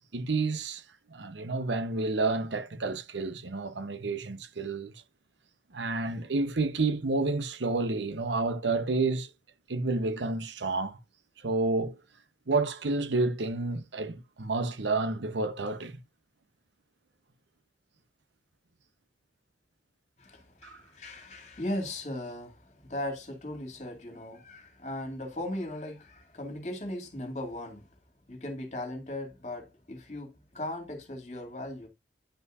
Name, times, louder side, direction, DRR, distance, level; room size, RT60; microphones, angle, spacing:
voice 1, 0.1-0.8 1.1-4.9 5.7-9.3 9.7-11.0 11.4-12.0 12.5-16.0 20.6-20.8, right 3 dB, 85° right, 0.9 m, -30 dB
voice 2, 20.2-27.9 28.3-31.9, left 1 dB, 40° left, 2.3 m, -38 dB
10.0 x 5.5 x 2.4 m
head